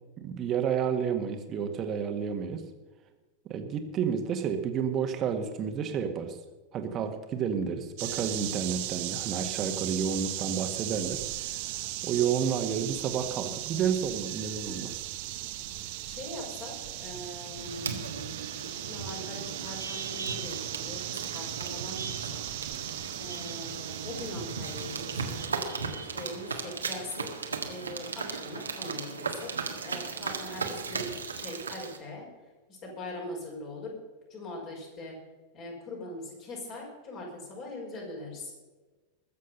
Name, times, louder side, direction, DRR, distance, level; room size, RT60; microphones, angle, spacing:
voice 1, 0.2-2.6 3.5-6.4 6.7-11.2 12.0-15.1, right 7 dB, 30° right, 6 dB, 1.7 m, -30 dB
sound 1, 8.0-25.5, right 15 dB, 50° right, 1.1 m, -37 dB
voice 2, 16.0-18.1 18.9-22.4 23.2-25.4 26.0-29.5 29.8-32.3 32.7-34.0 34.3-35.2 35.5-38.5, left 1 dB, 40° left, -1 dB, 5.6 m, -41 dB
sound 2, 17.5-32.0, right 5 dB, 75° right, 1.6 m, -37 dB
21.0 x 7.5 x 5.6 m, 1.2 s
figure-of-eight pair, 90°, 0 cm